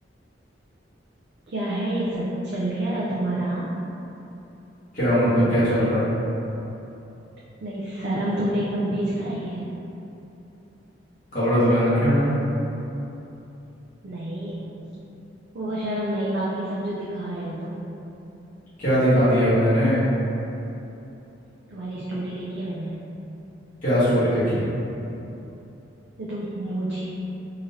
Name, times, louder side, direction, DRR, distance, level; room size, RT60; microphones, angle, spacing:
voice 1, 1.5-3.7 7.6-9.7 14.0-14.7 15.5-17.8 21.7-22.9 26.2-27.1, right 1 dB, 65° right, -7 dB, 0.5 m, -28 dB
voice 2, 4.9-6.0 11.3-12.3 18.8-20.0 23.8-24.6, equal, 45° left, -14 dB, 1.4 m, -20 dB
3.7 x 3.1 x 2.7 m, 3.0 s
head